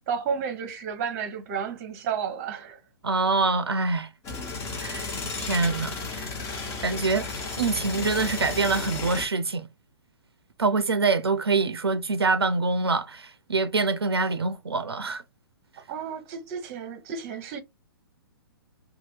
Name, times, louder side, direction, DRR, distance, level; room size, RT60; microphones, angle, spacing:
voice 1, 0.1-2.8 15.9-17.6, right 7 dB, 35° right, 0.7 m, -32 dB
voice 2, 3.0-4.1 4.8-6.4 6.8-7.3 7.6-9.7 10.6-15.2, right 3 dB, 85° right, 0.4 m, -25 dB
sound 1, 4.2-9.3, left 4 dB, 20° left, 1.0 m, -33 dB
2.6 x 2.2 x 3.2 m
figure-of-eight pair, 120°, 13 cm